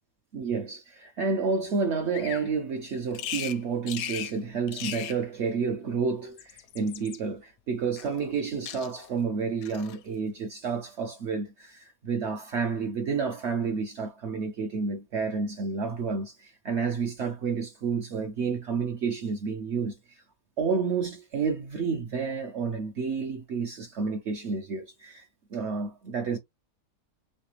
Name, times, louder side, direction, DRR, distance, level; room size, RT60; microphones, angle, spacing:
voice 1, 0.3-20.2 20.6-25.2 25.5-26.4, right 5 dB, 60° right, 0.7 m, -30 dB
Bird vocalization bird call bird song, 2.1-2.5 3.1-3.6 3.9-4.4 4.7-5.2 6.2-7.2 8.0-8.4 8.7-9.1 9.6-10.0, left 10 dB, 75° left, 1.0 m, -37 dB
3.3 x 3.0 x 3.0 m
omnidirectional pair, 1.6 m